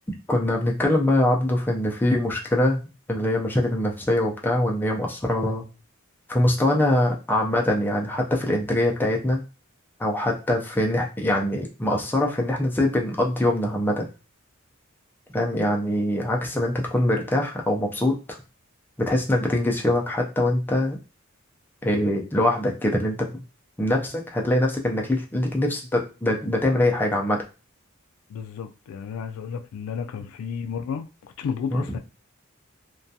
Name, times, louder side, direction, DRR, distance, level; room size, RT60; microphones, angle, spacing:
voice 1, 0.3-2.8 3.1-5.6 6.3-9.4 10.0-14.1 15.3-18.4 19.0-21.0 21.8-23.4 23.8-27.4 31.7-31.8, left 1 dB, 10° left, 0.4 m, -23 dB
voice 2, 28.3-32.0, left 6 dB, 85° left, 0.3 m, -32 dB
2.2 x 2.2 x 2.6 m
head